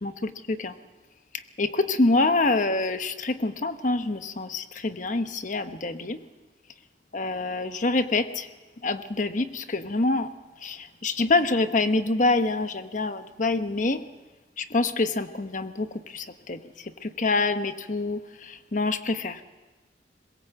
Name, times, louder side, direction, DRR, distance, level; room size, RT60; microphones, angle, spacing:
voice 1, 0.0-0.7 1.3-6.2 7.1-8.5 8.8-10.3 10.6-14.0 14.6-19.4, left 3 dB, 45° left, 9 dB, 1.0 m, -26 dB
22.0 x 20.5 x 7.9 m, 1.2 s
head